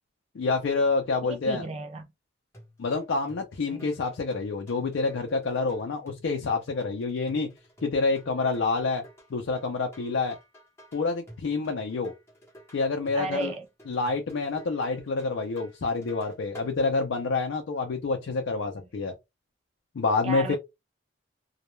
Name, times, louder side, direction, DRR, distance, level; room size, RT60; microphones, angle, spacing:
voice 1, 0.3-1.6 2.8-7.5 7.8-9.0 9.3-10.4 10.9-12.1 12.7-13.5 13.9-19.1 19.9-20.6, left 3 dB, 80° left, 0.4 m, -27 dB
voice 2, 1.3-2.1 3.7-3.9 13.1-13.7 20.2-20.6, right 3 dB, 35° right, 0.4 m, -33 dB
sound 1, 2.5-16.7, equal, 15° left, 0.9 m, -51 dB
2.2 x 2.1 x 3.0 m
head